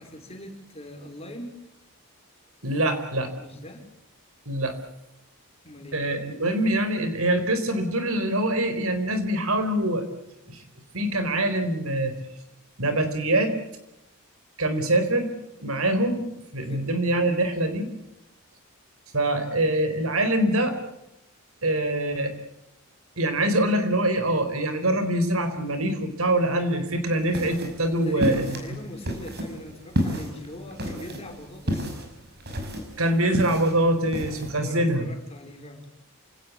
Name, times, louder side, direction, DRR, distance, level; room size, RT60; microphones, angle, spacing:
voice 1, 0.0-1.6 3.4-3.9 5.6-6.0 16.6-16.9 28.0-31.9 34.5-35.9, left 1 dB, 25° left, 4 dB, 4.6 m, -41 dB
voice 2, 2.6-3.3 4.5-4.8 5.9-10.0 10.5-10.6 10.9-12.2 12.8-13.6 14.6-15.3 15.6-16.2 16.5-17.9 19.1-20.8 21.6-22.3 23.2-28.6 33.0-35.1, right 1 dB, 70° right, 9 dB, 4.3 m, -24 dB
sound 1, 27.1-34.5, equal, 45° right, 5.7 m, -31 dB
28.0 x 18.0 x 8.4 m, 0.86 s
head